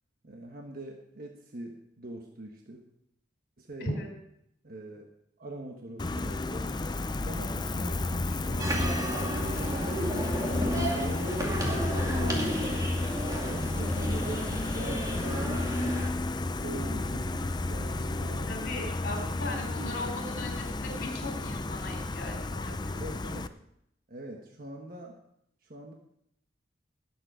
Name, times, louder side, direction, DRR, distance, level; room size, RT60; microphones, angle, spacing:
voice 1, 0.2-2.8 3.6-4.0 4.6-5.1 5.4-6.7 7.2-10.5 10.9-12.5 13.2-16.1 16.5-18.5 19.5-19.9 22.9-23.5 24.1-25.2 25.6-25.9, right 1 dB, 50° right, 2 dB, 1.3 m, -43 dB
Gull seagull, 6.0-23.5, left 2 dB, 25° left, 0.5 m, -32 dB
sound 1, 8.6-16.1, right 1 dB, 20° right, 2.4 m, -33 dB
voice 2, 18.5-23.0, left 1 dB, 50° left, 1 dB, 3.4 m, -38 dB
19.5 x 7.8 x 4.9 m, 0.77 s
head